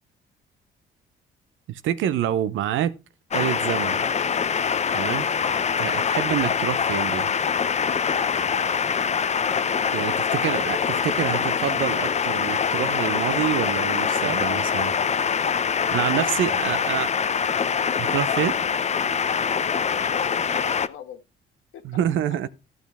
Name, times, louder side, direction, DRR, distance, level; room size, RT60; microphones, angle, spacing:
voice 1, 1.7-2.9 3.3-4.1 4.9-5.3 5.6-7.3 9.9-14.9 15.9-17.1 18.0-18.5 21.8-22.5, right 10 dB, 80° right, 0.7 m, -27 dB
sound 1, 3.3-20.9, left 6 dB, 35° left, 0.6 m, -24 dB
voice 2, 9.8-10.2 10.5-11.4 15.6-17.1 17.7-18.0 19.6-21.2 21.7-21.8, left 8 dB, 80° left, 1.7 m, -42 dB
14.0 x 6.2 x 3.5 m
cardioid pair, 90°, 20 cm